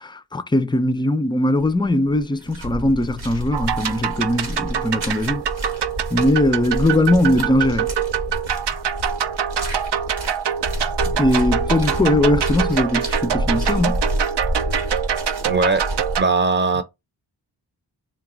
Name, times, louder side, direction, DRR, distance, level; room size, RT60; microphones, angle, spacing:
voice 1, 0.0-5.5 6.1-7.9 11.1-14.0, left 1 dB, 10° left, 0.3 m, -20 dB
sound 1, 1.6-1.9 2.2-16.2, equal, 90° right, 1.3 m, -29 dB
sound 2, 3.5-16.2, right 8 dB, 65° right, 0.5 m, -24 dB
voice 2, 15.5-15.8 16.2-16.8, right 3 dB, 25° right, 0.8 m, -19 dB
3.8 x 2.3 x 3.8 m
wide cardioid pair, 60°, 45 cm